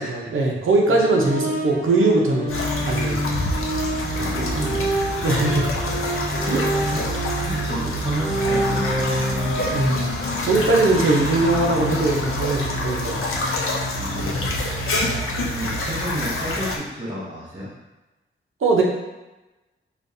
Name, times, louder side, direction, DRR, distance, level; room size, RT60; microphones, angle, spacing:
voice 1, 0.0-2.6 2.9-3.2 5.2-5.7 6.4-6.9 9.7-10.0 10.4-13.2 15.0-15.2 18.6-18.8, right 2 dB, 75° right, -1 dB, 0.7 m, -21 dB
sound 1, 0.9-10.1, right 1 dB, 5° left, 1.4 m, -27 dB
sound 2, 2.5-16.8, left 1 dB, 80° left, 0.6 m, -26 dB
voice 2, 4.1-5.3 6.8-9.7 13.9-14.5 15.5-17.7, right 1 dB, 25° right, -9 dB, 0.8 m, -32 dB
5.0 x 2.4 x 2.7 m, 1.1 s
wide cardioid pair, 165°, 21 cm